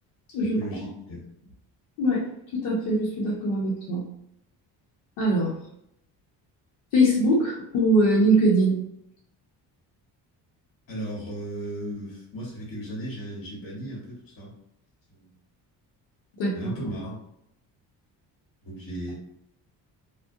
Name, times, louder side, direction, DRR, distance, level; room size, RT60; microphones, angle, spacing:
voice 1, 0.5-1.2 10.9-14.5 15.1-15.3 16.5-17.2 18.6-19.1, right 1 dB, 50° left, -4 dB, 1.1 m, -36 dB
voice 2, 2.0-4.1 5.2-5.5 6.9-8.8 16.4-16.7, right 1 dB, 85° left, -5 dB, 0.7 m, -22 dB
2.2 x 2.1 x 2.6 m, 0.77 s
supercardioid pair, 60°, 46 cm